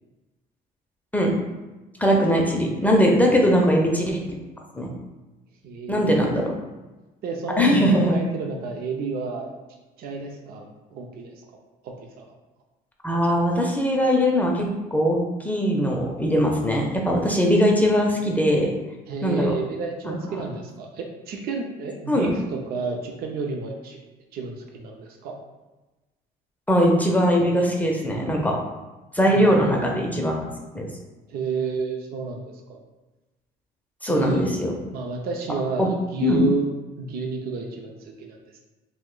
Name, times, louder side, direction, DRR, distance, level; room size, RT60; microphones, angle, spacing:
voice 1, 2.0-4.2 4.8-4.9 5.9-6.5 7.6-8.2 13.0-18.7 19.2-19.5 20.1-20.4 22.1-22.4 26.7-28.6 29.1-30.5 30.7-30.9 34.0-34.7 35.8-35.9 36.2-36.4, equal, 10° left, 0 dB, 0.4 m, -21 dB
voice 2, 3.3-3.6 5.6-6.4 7.2-9.5 10.0-11.3 11.8-12.3 19.1-24.0 24.3-25.4 29.3-29.9 31.3-32.8 34.1-34.5 34.9-36.7 37.0-38.6, right 4 dB, 65° right, 2 dB, 0.5 m, -31 dB
2.6 x 2.1 x 3.7 m, 1.1 s
cardioid pair, 110°, 17 cm